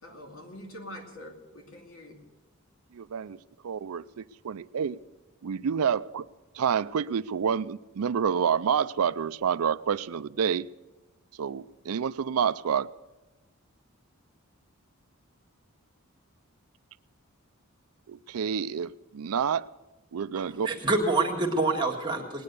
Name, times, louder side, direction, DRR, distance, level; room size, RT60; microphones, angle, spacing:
voice 1, 0.0-2.2, left 1 dB, 75° left, 2.7 m, -44 dB
voice 2, 2.9-3.4 3.6-5.0 5.4-6.3 6.5-10.7 11.4-12.9 18.1-19.7 20.1-20.7, right 7 dB, 80° right, 0.4 m, -28 dB
voice 3, 20.3-22.4, right 3 dB, 20° right, 1.8 m, -27 dB
19.5 x 9.6 x 6.7 m
head